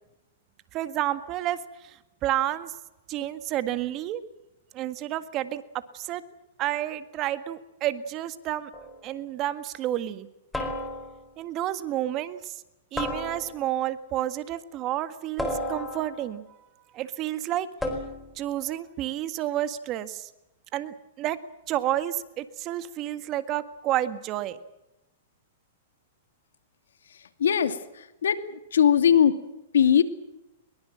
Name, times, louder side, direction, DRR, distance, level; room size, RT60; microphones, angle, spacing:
voice 1, 0.7-1.6 1.8-2.7 3.1-4.2 4.7-5.6 5.9-6.2 6.6-8.7 9.0-10.3 11.4-12.6 12.9-16.4 16.9-17.7 18.4-20.3 20.7-21.4 21.7-24.6, right 13 dB, 35° right, 11 dB, 1.7 m, -30 dB
sound 1, 8.7-9.1 10.5-11.3 13.0-13.8 15.4-16.3 17.8-18.4, left 1 dB, 5° left, 4.4 m, -33 dB
voice 2, 27.4-27.8 28.2-28.4 28.7-29.4 29.7-30.0, left 8 dB, 85° left, 10 dB, 2.5 m, -19 dB
23.5 x 22.5 x 7.6 m, 0.95 s
hypercardioid pair, 135°, 0 cm